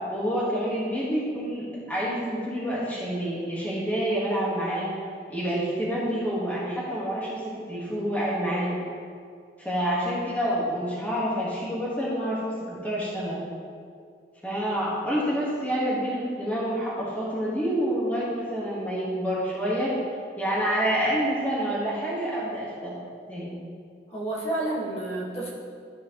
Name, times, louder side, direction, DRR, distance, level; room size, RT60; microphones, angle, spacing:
voice 1, 0.1-4.9 5.3-8.8 9.6-13.4 14.4-19.9 20.4-23.0 23.3-23.5, equal, 10° left, -8 dB, 1.4 m, -28 dB
voice 2, 24.1-25.5, right 2 dB, 35° left, -6 dB, 1.5 m, -30 dB
13.0 x 4.4 x 3.0 m, 2.3 s
head